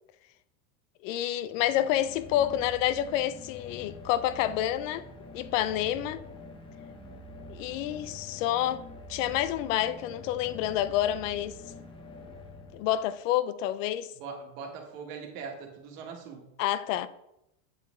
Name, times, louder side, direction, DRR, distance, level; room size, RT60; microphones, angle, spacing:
voice 1, 1.0-5.1 5.3-6.2 7.5-8.8 9.1-11.5 12.7-14.1 16.6-17.1, left 12 dB, 60° left, 0.5 m, -28 dB
sound 1, 1.4-13.3, left 2 dB, 10° left, 0.6 m, -46 dB
voice 2, 14.2-16.5, right 5 dB, 60° right, 1.5 m, -41 dB
7.8 x 4.1 x 3.6 m
supercardioid pair, 130°, 44 cm